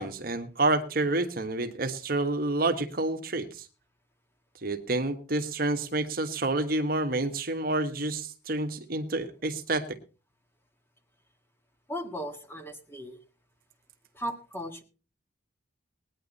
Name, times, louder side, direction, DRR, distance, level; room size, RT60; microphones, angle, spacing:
voice 1, 0.0-3.7 4.6-9.9, right 2 dB, 50° right, 6 dB, 1.3 m, -29 dB
voice 2, 11.9-13.2 14.1-14.8, equal, 10° left, 5 dB, 1.7 m, -36 dB
19.0 x 9.9 x 4.1 m, 0.35 s
head